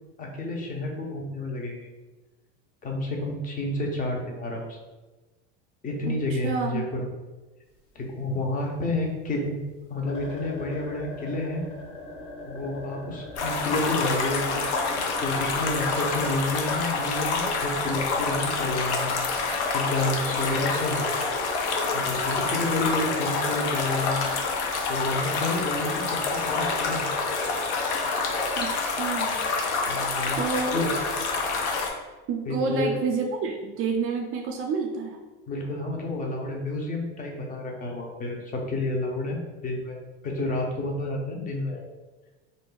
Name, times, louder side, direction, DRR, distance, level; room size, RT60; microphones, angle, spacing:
voice 1, 0.2-1.8 2.8-4.7 5.8-7.1 7.9-9.6 9.9-11.6 12.5-14.6 14.9-21.1 21.9-24.3 24.9-27.0 29.9-30.4 30.7-30.9 32.5-32.9 35.5-40.0 40.2-41.9, left 2 dB, 25° left, 1 dB, 0.6 m, -30 dB
voice 2, 6.1-6.9 28.6-29.4 30.3-30.8 32.3-35.2, right 5 dB, 40° right, 2 dB, 0.4 m, -29 dB
sound 1, 7.7-8.5 8.8-8.9 9.3-9.4 9.7-9.8 10.1-16.4 17.5-17.6 17.9-18.2 18.5-18.8 19.3-19.4 19.7-20.1 20.7-22.4, left 2 dB, 40° left, 1.1 m, -42 dB
sound 2, 13.4-31.9, left 4 dB, 85° left, 0.6 m, -27 dB
2.5 x 2.2 x 3.7 m, 1.2 s
supercardioid pair, 105°, 32 cm